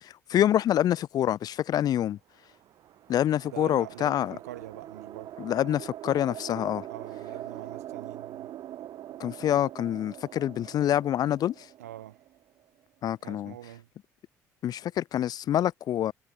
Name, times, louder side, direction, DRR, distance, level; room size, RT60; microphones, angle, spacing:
voice 1, 0.0-2.2 3.1-4.4 5.4-6.9 9.2-11.7 13.0-13.5 14.6-16.1, left 11 dB, 50° left, 0.4 m, -26 dB
sound 1, 2.4-12.8, right 12 dB, 55° right, 0.9 m, -43 dB
voice 2, 3.4-5.3 6.9-8.5 11.8-12.2 13.2-13.9, right 13 dB, 90° right, 1.9 m, -43 dB
hypercardioid pair, 60°, 8 cm